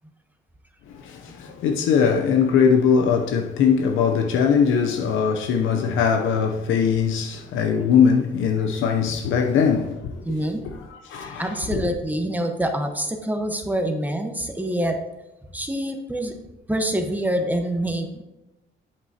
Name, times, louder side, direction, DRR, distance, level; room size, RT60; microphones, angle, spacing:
voice 1, 0.9-10.3 10.6-11.9, left 6 dB, 80° left, 0.7 m, -21 dB
voice 2, 10.2-10.6 11.2-15.0 15.5-16.3 16.7-18.2, right 1 dB, 10° right, 1.0 m, -26 dB
8.3 x 7.9 x 2.8 m
cardioid pair, 90°, 20 cm